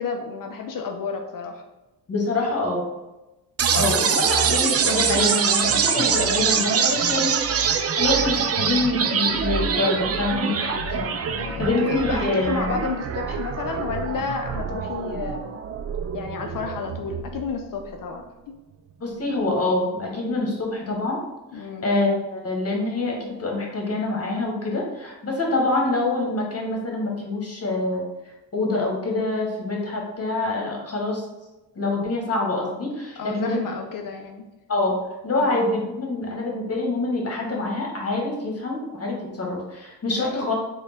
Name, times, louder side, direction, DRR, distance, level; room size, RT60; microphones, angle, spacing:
voice 1, 0.0-1.6 4.0-4.1 11.4-15.6 16.1-18.2 21.5-21.9 33.2-34.4 35.3-35.6 40.2-40.5, left 5 dB, 55° left, 3 dB, 0.5 m, -31 dB
voice 2, 2.1-2.9 3.7-11.2 11.6-12.7 19.0-21.2 21.5-31.2 31.7-33.6 34.7-34.9 35.2-40.5, left 2 dB, 35° left, -1 dB, 1.2 m, -26 dB
sound 1, 3.6-17.6, right 7 dB, 40° right, 0.4 m, -24 dB
4.1 x 2.3 x 3.4 m, 1.0 s
cardioid pair, 65°, 41 cm